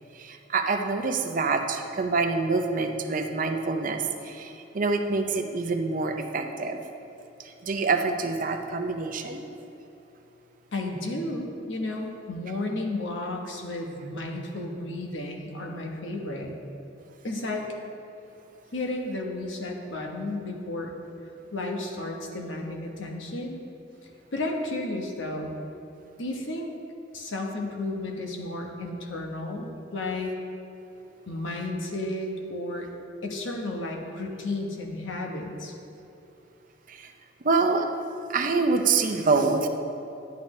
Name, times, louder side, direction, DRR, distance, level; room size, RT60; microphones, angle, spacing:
voice 1, 0.1-6.8 7.4-9.4 36.9-37.1 37.4-37.9 38.3-39.7, right 4 dB, 45° right, 5 dB, 0.6 m, -26 dB
voice 2, 10.7-16.5 17.2-17.7 18.7-20.9 21.5-23.6 24.0-25.5 26.2-26.7 27.1-30.3 31.3-32.9 33.2-35.7, left 2 dB, 70° left, 1 dB, 1.1 m, -33 dB
10.5 x 8.3 x 3.2 m, 2.9 s
head